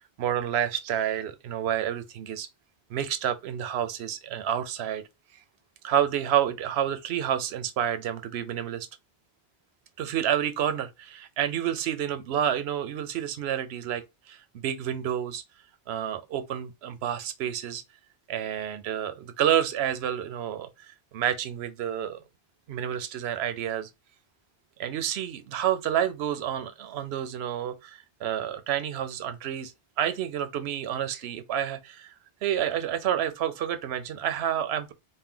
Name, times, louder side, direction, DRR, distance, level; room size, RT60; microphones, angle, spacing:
voice 1, 0.2-2.5 2.9-5.0 5.8-8.9 10.0-15.4 15.9-17.8 18.3-22.2 22.7-23.9 24.8-32.1 32.4-34.9, right 10 dB, 85° right, 0.8 m, -29 dB
4.3 x 2.1 x 3.7 m
omnidirectional pair, 1.1 m